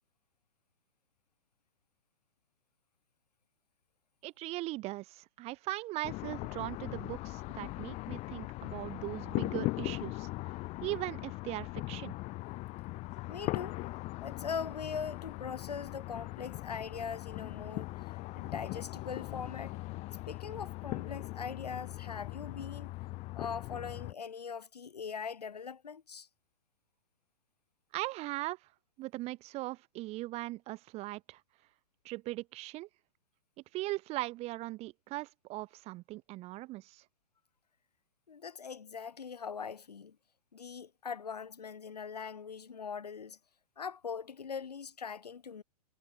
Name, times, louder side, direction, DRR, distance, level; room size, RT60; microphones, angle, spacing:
voice 1, 4.2-10.3 10.8-12.1 27.9-28.6 29.0-31.4 32.0-32.9 33.7-37.0, right 19 dB, 30° right, 1.4 m, -39 dB
sound 1, 6.0-24.1, left 21 dB, 35° left, 1.8 m, -40 dB
voice 2, 13.3-13.8 14.2-19.8 20.3-22.9 23.3-26.3 38.3-40.2 40.5-43.4 43.8-45.6, left 6 dB, 80° left, 1.6 m, -41 dB
figure-of-eight pair, 110°, 20 cm